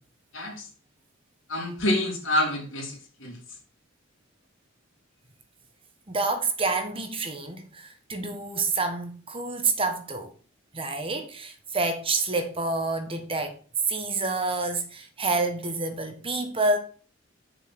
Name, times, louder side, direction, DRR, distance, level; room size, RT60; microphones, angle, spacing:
voice 1, 0.3-0.7 1.5-3.4, left 1 dB, 85° left, 3.4 m, -27 dB
voice 2, 6.1-10.3 10.7-13.5 13.9-16.8, right 3 dB, 30° right, 1.2 m, -28 dB
6.7 x 5.1 x 5.9 m
head